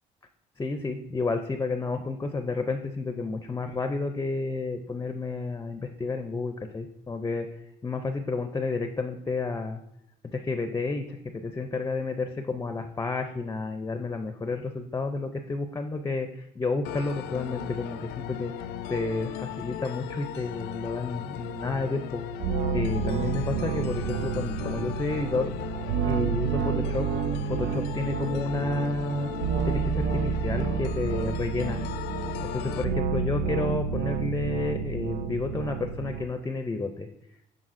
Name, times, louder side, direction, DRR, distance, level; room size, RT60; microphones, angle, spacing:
voice 1, 0.6-7.5 7.8-9.8 10.3-22.2 22.7-25.5 26.0-27.1 27.4-29.3 29.6-31.8 32.5-37.1, left 3 dB, 15° left, 7 dB, 0.4 m, -31 dB
sound 1, 16.8-32.8, left 9 dB, 85° left, 0.4 m, -37 dB
sound 2, 22.4-36.2, right 6 dB, 80° right, 0.4 m, -30 dB
10.5 x 3.8 x 2.5 m, 0.78 s
cardioid pair, 110°, 17 cm